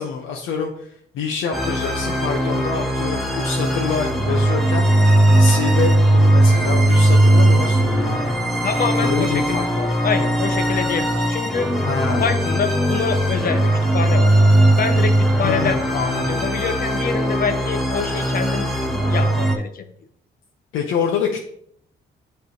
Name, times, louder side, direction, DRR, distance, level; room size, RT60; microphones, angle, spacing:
voice 1, 0.0-4.9 5.4-8.5 9.0-9.9 11.8-12.3 15.4-16.4 20.7-21.4, left 6 dB, 85° left, 0 dB, 0.8 m, -26 dB
sound 1, 1.5-19.6, right 1 dB, ahead, 1.0 m, -18 dB
voice 2, 8.6-9.6 10.0-11.7 12.2-14.3 14.8-15.8 16.3-18.7 19.1-19.8, left 6 dB, 50° left, 8 dB, 0.9 m, -25 dB
9.1 x 3.4 x 3.1 m, 0.67 s
cardioid pair, 90°, 20 cm